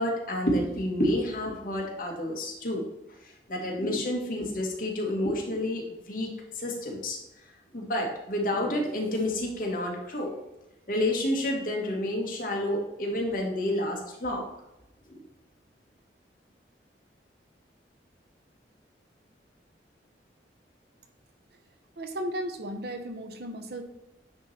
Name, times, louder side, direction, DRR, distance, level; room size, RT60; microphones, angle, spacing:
voice 1, 0.0-2.8 3.5-7.2 7.7-10.3 10.9-14.5 15.1-15.2, left 1 dB, 50° left, 0 dB, 1.5 m, -29 dB
voice 2, 22.0-23.8, equal, 60° right, 7 dB, 0.8 m, -35 dB
9.4 x 3.2 x 4.1 m, 0.92 s
head